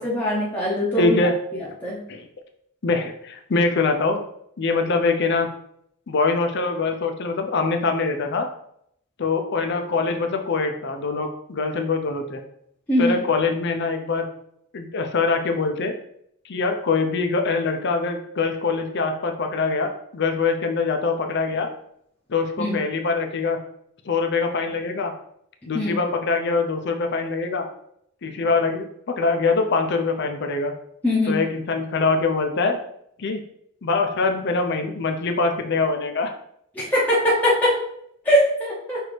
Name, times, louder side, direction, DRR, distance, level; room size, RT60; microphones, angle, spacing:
voice 1, 0.0-1.2 1.8-2.0 12.9-13.2 22.6-22.8 25.7-26.0 31.0-31.4 36.7-37.8 38.2-39.0, left 1 dB, 10° left, -7 dB, 0.8 m, -21 dB
voice 2, 1.0-1.3 2.1-2.3 2.8-4.2 4.6-5.5 6.1-8.5 9.2-12.4 13.0-14.3 14.7-15.9 16.4-21.7 22.3-23.6 24.1-25.1 25.7-27.7 28.2-28.9 29.2-30.7 31.3-32.8 33.2-33.4 33.8-36.3, left 4 dB, 55° left, 5 dB, 0.5 m, -23 dB
5.9 x 2.7 x 3.2 m, 0.72 s
head